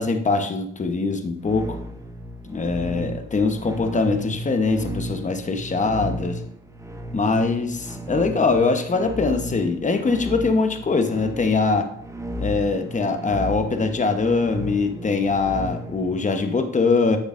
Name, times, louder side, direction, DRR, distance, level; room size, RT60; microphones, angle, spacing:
voice 1, 0.0-1.8 2.5-6.4 7.1-11.9 12.4-17.2, left 4 dB, 25° left, 6 dB, 1.0 m, -22 dB
sound 1, 1.4-16.2, equal, 10° right, 0.8 m, -34 dB
9.9 x 6.7 x 2.6 m, 0.67 s
cardioid pair, 90°, 30 cm